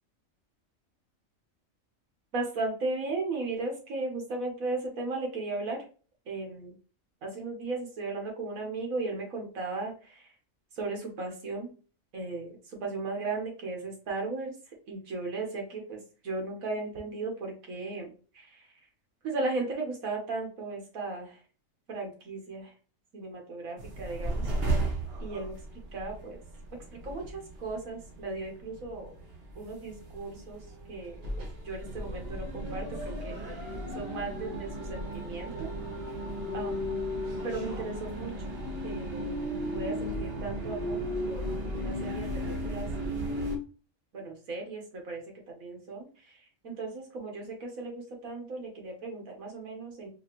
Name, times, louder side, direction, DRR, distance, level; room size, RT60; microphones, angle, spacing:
voice 1, 2.3-5.8 6.2-6.7 7.2-10.3 10.7-11.7 12.1-14.5 14.9-18.8 19.2-21.4 21.9-22.7 23.1-24.9 25.2-25.6 25.9-26.4 26.9-29.1 29.5-31.2 31.6-35.7 36.5-37.0 37.4-38.5 38.8-39.3 39.7-41.0 41.3-41.4 41.7-43.2 44.1-50.1, right 3 dB, 85° right, 1 dB, 1.7 m, -36 dB
sound 1, 23.8-43.6, right 1 dB, 50° right, 1.2 m, -35 dB
4.7 x 2.7 x 2.9 m, 0.38 s
omnidirectional pair, 1.4 m